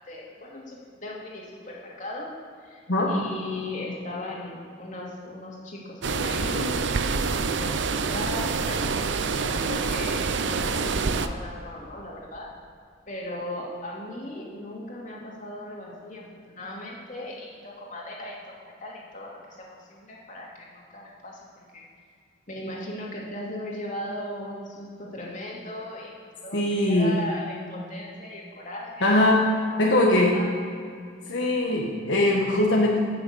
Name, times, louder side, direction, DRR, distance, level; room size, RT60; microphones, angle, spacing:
voice 1, 0.1-2.3 2.6-6.9 7.6-8.8 9.4-12.5 13.1-21.8 22.5-26.1 26.4-29.1 29.7-29.8 30.3-30.5, left 1 dB, 40° left, -3 dB, 2.7 m, -37 dB
sound 1, 6.0-11.3, right 4 dB, 70° right, 0.6 m, -26 dB
voice 2, 26.5-27.2 29.0-29.4 29.8-30.4 31.3-33.0, left 1 dB, 75° left, -2 dB, 1.6 m, -21 dB
12.0 x 6.9 x 8.4 m, 2.2 s
head